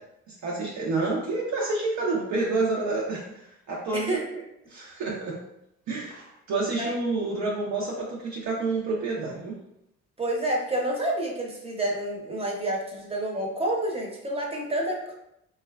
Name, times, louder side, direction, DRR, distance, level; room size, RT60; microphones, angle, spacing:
voice 1, 0.3-4.2 4.7-5.4 5.9-9.6, right 3 dB, 65° right, -3 dB, 0.6 m, -29 dB
voice 2, 10.2-15.0, right 1 dB, 20° right, -1 dB, 0.7 m, -29 dB
3.0 x 2.2 x 2.2 m, 0.82 s
cardioid pair, 90°, 30 cm